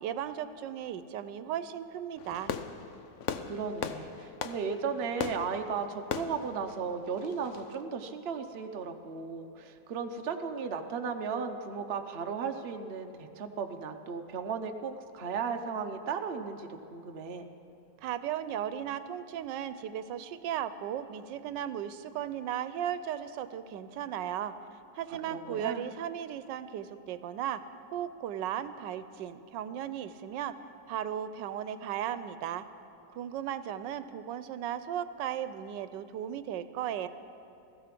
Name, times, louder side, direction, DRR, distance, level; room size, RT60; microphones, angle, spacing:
voice 1, 0.0-2.5 18.0-24.5 24.9-27.6 27.9-30.6 30.9-32.6 33.1-37.1, right 10 dB, 85° right, 13 dB, 1.3 m, -36 dB
Fireworks, 2.2-7.8, left 7 dB, 60° left, 0.8 m, -39 dB
voice 2, 3.5-17.5 25.1-25.8, right 5 dB, 45° right, 5 dB, 0.9 m, -35 dB
16.0 x 14.5 x 5.9 m, 2.6 s
omnidirectional pair, 1.9 m